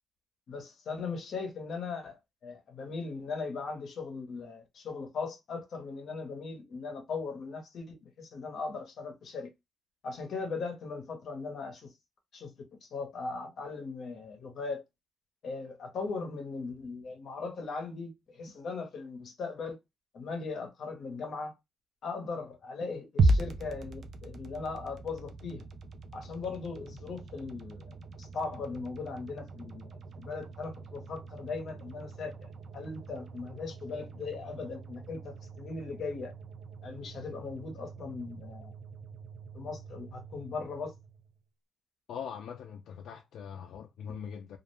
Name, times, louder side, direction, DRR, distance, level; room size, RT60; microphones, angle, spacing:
voice 1, 0.5-2.2 2.4-9.5 10.0-11.9 12.3-14.8 15.4-19.8 20.1-21.5 22.0-25.6 26.1-32.3 32.7-36.3 36.8-38.7 39.5-40.9, left 4 dB, 55° left, 0.7 m, -39 dB
sound 1, 23.2-41.4, right 2 dB, 45° right, 0.3 m, -37 dB
voice 2, 42.1-44.6, left 7 dB, 80° left, 0.3 m, -42 dB
2.3 x 2.1 x 3.0 m
wide cardioid pair, 175°, 0 cm